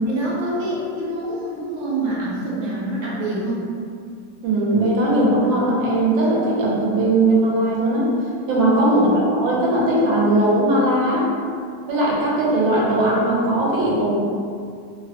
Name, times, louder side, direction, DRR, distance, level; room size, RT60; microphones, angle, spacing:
voice 1, 0.0-3.7 8.9-9.4, right 1 dB, 60° right, -7 dB, 0.8 m, -26 dB
voice 2, 4.4-8.1 8.5-11.3 11.9-14.1, right 1 dB, 85° right, -5 dB, 1.4 m, -19 dB
3.4 x 2.1 x 2.7 m, 2.3 s
omnidirectional pair, 2.1 m